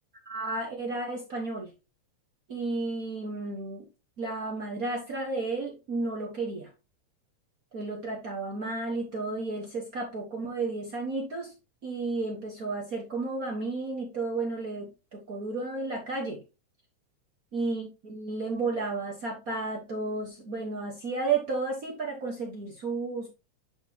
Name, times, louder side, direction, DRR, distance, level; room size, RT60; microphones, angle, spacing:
voice 1, 0.2-1.7 2.5-3.9 4.2-6.7 7.7-11.5 11.8-16.4 17.5-23.3, right 3 dB, 50° right, -1 dB, 1.0 m, -32 dB
9.3 x 4.5 x 2.9 m, 0.29 s
omnidirectional pair, 3.5 m